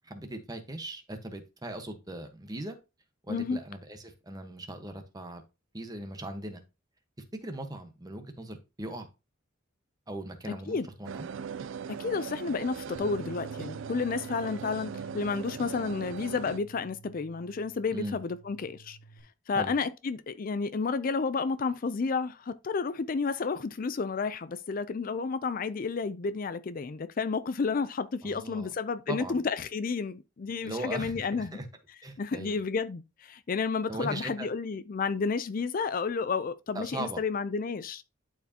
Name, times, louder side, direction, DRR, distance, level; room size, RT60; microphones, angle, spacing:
voice 1, 0.0-2.8 3.3-5.4 5.7-6.6 7.4-9.1 10.1-11.3 17.9-18.2 19.5-19.7 28.2-28.7 29.1-29.4 30.6-31.6 32.0-32.6 33.9-34.5 36.7-37.2, right 1 dB, 20° right, 1.1 m, -39 dB
sound 1, 11.0-16.6, right 6 dB, 70° right, 0.4 m, -39 dB
voice 2, 12.0-19.0 19.5-31.6 32.2-38.0, left 4 dB, 45° left, 0.4 m, -31 dB
Bass guitar, 12.9-19.2, right 4 dB, 5° right, 3.1 m, -50 dB
11.5 x 4.7 x 2.8 m
head